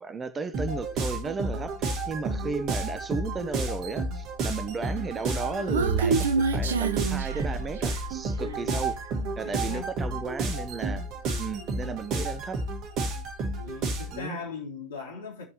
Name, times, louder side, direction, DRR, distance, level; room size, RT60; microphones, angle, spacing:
voice 1, 0.0-8.9 9.4-11.0 11.4-12.6 14.1-14.4, right 4 dB, 15° right, 0.8 m, -34 dB
sound 1, 0.5-14.2, right 2 dB, 35° right, 1.9 m, -31 dB
Human voice, 5.1-8.1, right 5 dB, 65° right, 0.7 m, -27 dB
voice 2, 8.4-8.9 9.4-9.9 13.6-15.5, left 4 dB, 60° left, 3.7 m, -39 dB
16.0 x 5.5 x 3.0 m
figure-of-eight pair, 90°, 0 cm